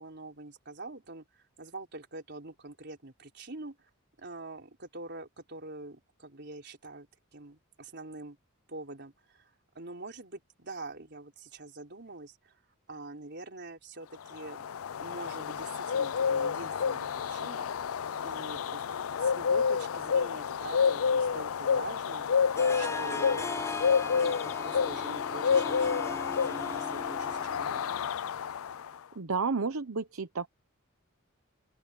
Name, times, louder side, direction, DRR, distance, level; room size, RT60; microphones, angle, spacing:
voice 1, 0.0-3.9 4.2-7.1 7.3-8.4 8.7-12.6 12.9-14.7 15.0-17.7 18.2-22.3 22.8-28.1, right 2 dB, 55° right, 4.0 m, -45 dB
sound 1, 14.3-28.9, left 6 dB, 75° left, 0.4 m, -29 dB
Harp, 22.6-28.0, left 3 dB, 10° left, 0.6 m, -39 dB
voice 2, 29.1-30.5, right 4 dB, 75° right, 0.9 m, -31 dB
open air
head